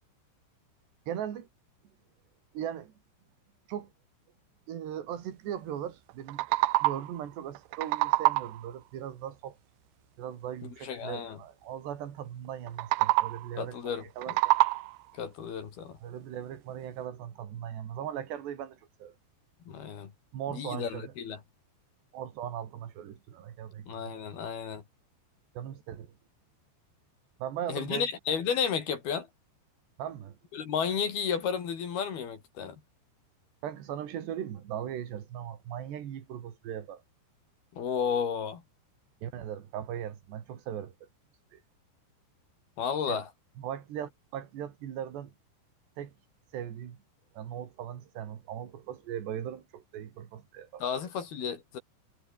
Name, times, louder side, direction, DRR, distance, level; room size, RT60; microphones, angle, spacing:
voice 1, 1.1-1.5 2.5-2.9 3.7-3.9 4.7-6.5 6.8-9.6 10.2-14.5 16.0-19.2 20.3-21.1 22.1-24.2 25.6-26.1 27.4-28.1 30.0-30.4 33.6-37.0 39.2-41.1 41.5-41.6 43.0-43.2 43.6-45.3 46.0-46.1 46.5-47.0 47.3-50.8, right 10 dB, 65° right, 4.5 m, -39 dB
sound 1, 6.1-7.2 7.6-8.7 12.7-13.6 14.0-15.1, right 21 dB, 80° right, 2.6 m, -27 dB
voice 2, 10.6-11.4 13.6-14.1 15.1-16.0 19.7-20.1 20.5-21.4 23.9-24.8 27.7-29.3 30.5-32.8 37.7-38.6 42.8-43.3 50.8-51.8, left 7 dB, 60° left, 4.8 m, -32 dB
omnidirectional pair, 5.3 m